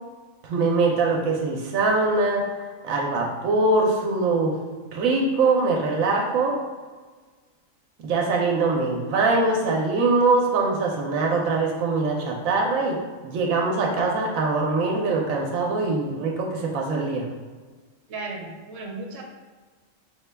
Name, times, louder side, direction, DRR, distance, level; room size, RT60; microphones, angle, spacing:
voice 1, 0.4-2.4 2.8-4.5 4.9-6.6 8.0-17.3, right 3 dB, 85° right, 0 dB, 1.0 m, -23 dB
voice 2, 18.1-19.2, right 3 dB, 70° right, 0 dB, 1.0 m, -35 dB
5.0 x 2.2 x 3.3 m, 1.4 s
omnidirectional pair, 1.4 m